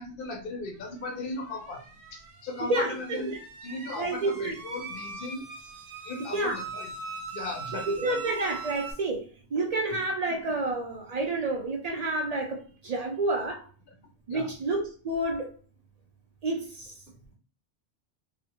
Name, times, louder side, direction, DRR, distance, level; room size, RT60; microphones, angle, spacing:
voice 1, 0.0-1.8 2.1-3.3 3.6-5.5 6.0-6.9 7.3-8.1 9.9-10.0 14.3-14.5, left 3 dB, 55° left, 0.7 m, -37 dB
sound 1, 1.3-8.9, right 4 dB, 55° right, 0.7 m, -41 dB
voice 2, 2.7-3.4 4.0-4.5 6.3-6.6 8.0-12.6 12.8-13.7 14.3-15.5 16.4-16.9, right 2 dB, 80° right, 0.3 m, -29 dB
2.8 x 2.0 x 2.8 m
omnidirectional pair, 1.2 m